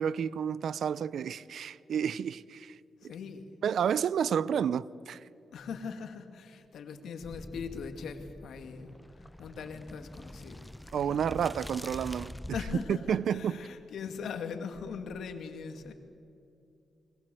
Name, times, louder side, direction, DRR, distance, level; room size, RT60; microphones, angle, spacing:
voice 1, 0.0-2.8 3.0-3.1 3.6-5.2 10.9-12.4 13.1-13.6, right 8 dB, 75° right, 0.7 m, -30 dB
voice 2, 3.0-3.5 5.5-11.2 12.5-15.9, left 6 dB, 80° left, 2.4 m, -41 dB
sound 1, 7.2-12.9, left 1 dB, 5° left, 0.6 m, -45 dB
30.0 x 22.0 x 7.8 m
cardioid pair, 65°, 0 cm